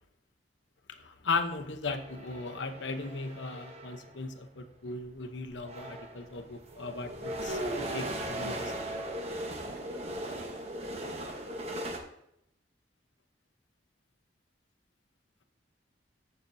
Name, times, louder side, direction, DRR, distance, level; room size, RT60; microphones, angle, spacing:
voice 1, 0.9-9.1, left 3 dB, 85° left, 7 dB, 0.9 m, -37 dB
sound 1, 1.9-4.2 5.1-5.2 5.5-12.0, right 1 dB, 35° right, 1.1 m, -38 dB
14.0 x 6.8 x 2.7 m, 0.78 s
head